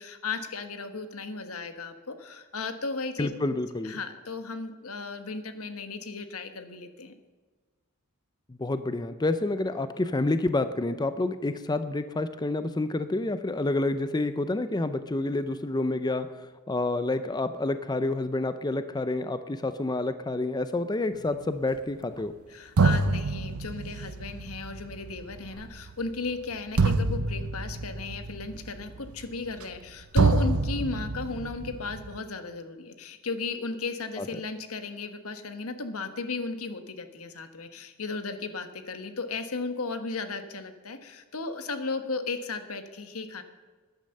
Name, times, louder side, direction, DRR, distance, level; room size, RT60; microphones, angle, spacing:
voice 1, 0.0-3.3 3.8-7.1 22.5-43.4, left 3 dB, 80° left, 8 dB, 1.4 m, -35 dB
voice 2, 3.2-4.0 8.5-22.3 34.2-34.4, left 2 dB, 20° left, 11 dB, 0.5 m, -29 dB
sound 1, 22.2-22.3 22.8-29.9 30.1-32.2, right 3 dB, 75° right, 0.7 m, -27 dB
13.0 x 10.5 x 6.6 m, 1.4 s
head